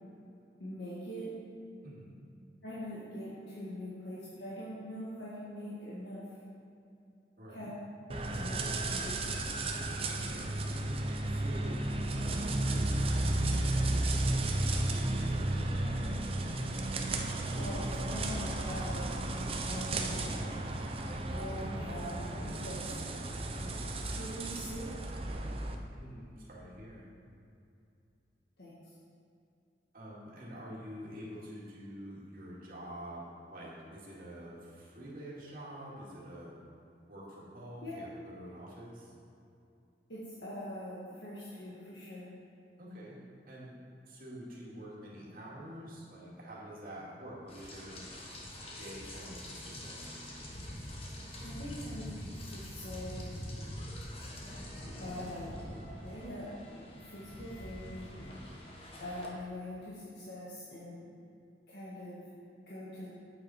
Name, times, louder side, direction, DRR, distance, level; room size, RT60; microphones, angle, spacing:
voice 1, 0.6-1.3 2.6-6.3 7.5-7.7 8.1-9.2 17.5-19.1 19.7-20.4 21.3-22.9 23.5-23.7 24.0-24.9 28.6-28.8 37.8-37.9 40.1-42.3 51.4-53.3 55.0-55.5 56.0-56.5 57.0-58.1 59.0-61.1 61.7-62.2 62.7-63.1, left 1 dB, 75° left, -9 dB, 1.7 m, -43 dB
voice 2, 1.8-2.2 7.4-7.7 10.1-10.6 11.3-16.0 25.9-27.1 29.9-36.6 37.1-39.1 42.8-43.2 43.5-43.7 44.1-48.3 48.8-50.2, equal, 55° right, -6 dB, 2.3 m, -47 dB
sound 1, 8.1-25.8, right 2 dB, 35° right, 0.6 m, -33 dB
Rain, 47.5-59.3, left 1 dB, 35° left, 1.3 m, -44 dB
9.1 x 8.0 x 4.3 m, 2.6 s
head